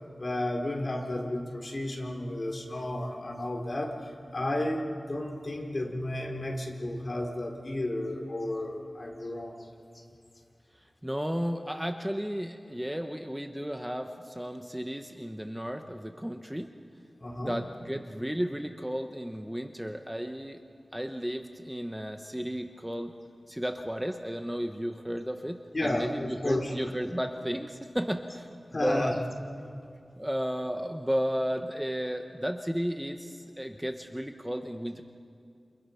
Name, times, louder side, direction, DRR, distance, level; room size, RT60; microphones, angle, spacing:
voice 1, 0.2-9.7 17.2-17.6 25.7-26.7 28.7-29.1, left 1 dB, 45° left, 0 dB, 3.8 m, -32 dB
voice 2, 11.0-16.7 17.4-20.6 20.9-23.1 23.5-28.5 28.8-29.1 30.2-35.0, equal, 5° right, 5 dB, 1.0 m, -33 dB
29.0 x 29.0 x 5.7 m, 2.4 s
wide cardioid pair, 75°, 0 cm